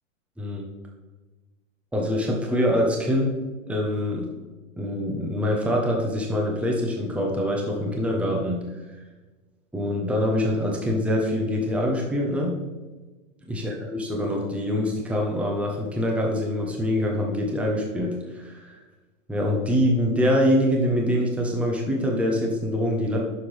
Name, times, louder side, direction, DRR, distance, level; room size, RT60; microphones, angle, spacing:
voice 1, 0.4-0.7 1.9-3.4 3.7-4.3 4.8-8.6 9.7-12.5 13.5-18.8 19.3-23.2, equal, 5° right, 0 dB, 1.1 m, -24 dB
9.5 x 6.9 x 3.4 m, 1.2 s
hypercardioid pair, 130°, 40 cm